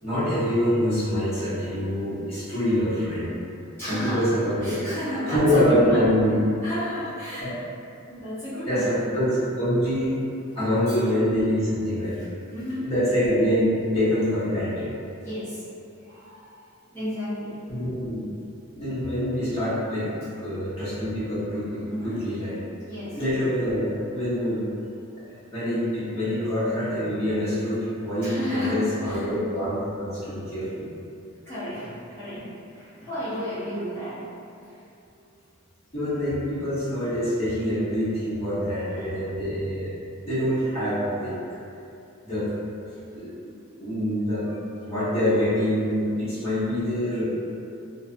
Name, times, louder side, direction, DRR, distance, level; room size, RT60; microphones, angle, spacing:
voice 1, 0.0-3.4 3.9-4.8 5.3-6.4 7.4-7.5 8.7-10.2 10.5-12.2 12.8-14.9 17.7-18.2 18.7-20.1 20.4-22.6 23.1-24.6 25.5-30.9 35.9-39.9 40.2-41.3 42.2-42.5 43.1-43.5 43.8-44.5 44.8-47.3, equal, 30° left, -13 dB, 1.0 m, -25 dB
voice 2, 3.8-4.3 4.6-6.1 6.6-7.5 8.1-9.1 10.9-11.0 12.2-12.9 14.8-14.9 15.2-15.6 16.0-16.5 16.9-17.6 21.9-22.2 22.9-23.2 28.2-29.3 31.5-34.3 34.6-34.8 38.7-39.1, left 1 dB, 10° left, -15 dB, 0.6 m, -32 dB
2.5 x 2.1 x 2.5 m, 2.6 s
head